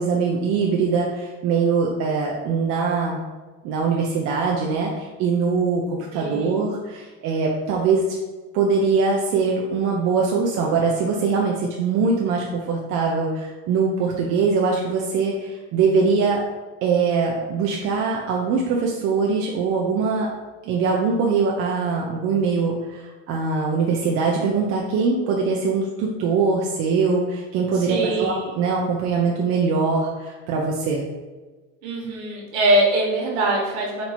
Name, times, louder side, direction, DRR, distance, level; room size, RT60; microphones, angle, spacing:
voice 1, 0.0-3.2 3.6-8.0 8.5-16.4 16.8-20.3 20.6-31.0, right 4 dB, 45° right, -1 dB, 0.5 m, -22 dB
voice 2, 6.1-6.6 27.7-28.5 31.8-34.0, right 1 dB, 60° right, -2 dB, 1.4 m, -23 dB
4.4 x 2.6 x 4.2 m, 1.2 s
cardioid pair, 170°, 33 cm